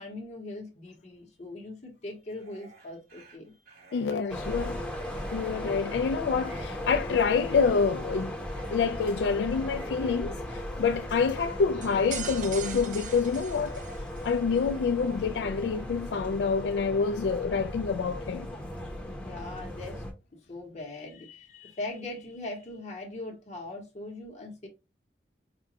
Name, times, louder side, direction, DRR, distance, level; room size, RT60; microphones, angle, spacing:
voice 1, 0.0-3.5 4.2-4.4 19.1-20.0 20.3-24.7, left 2 dB, 40° left, 0.9 m, -40 dB
Dog, 2.3-15.3, right 2 dB, 60° right, 2.0 m, -53 dB
voice 2, 3.9-4.8 5.3-8.4 8.7-13.8 14.2-18.5, left 5 dB, 75° left, 0.3 m, -27 dB
sound 1, 4.3-20.1, left 1 dB, 5° left, 0.8 m, -37 dB
sound 2, 11.8-14.3, right 8 dB, 45° right, 0.5 m, -40 dB
4.9 x 2.2 x 2.7 m
head